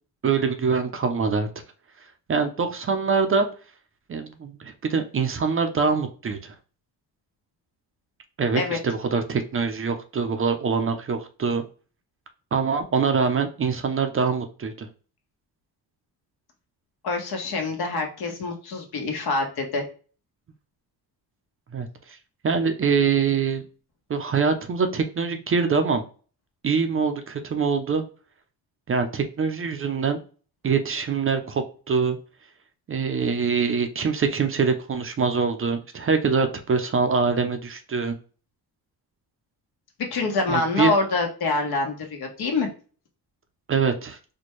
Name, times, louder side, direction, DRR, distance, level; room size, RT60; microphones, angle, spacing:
voice 1, 0.2-1.5 2.3-3.5 4.1-6.5 8.4-11.6 12.5-14.9 21.7-22.2 22.4-23.6 24.1-26.0 26.6-28.0 28.9-30.2 30.6-32.2 32.9-38.2 40.5-40.9 43.7-44.2, right 5 dB, 35° right, 7 dB, 0.5 m, -24 dB
voice 2, 17.0-19.8 40.1-42.7, left 3 dB, 70° left, 3 dB, 1.2 m, -26 dB
4.3 x 2.2 x 3.1 m, 0.38 s
cardioid pair, 115°, 40 cm